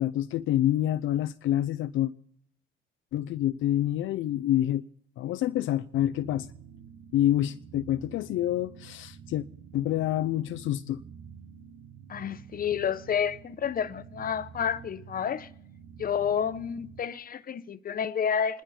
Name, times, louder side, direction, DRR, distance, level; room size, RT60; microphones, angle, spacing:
voice 1, 0.0-2.1 3.1-4.8 5.2-6.5 7.1-9.4 9.7-11.0, left 12 dB, 80° left, 0.5 m, -27 dB
sound 1, 5.9-17.0, right 7 dB, 75° right, 1.2 m, -49 dB
voice 2, 12.1-15.5 16.0-18.6, left 8 dB, 45° left, 0.9 m, -30 dB
26.5 x 11.5 x 4.3 m
cardioid pair, 90°, 20 cm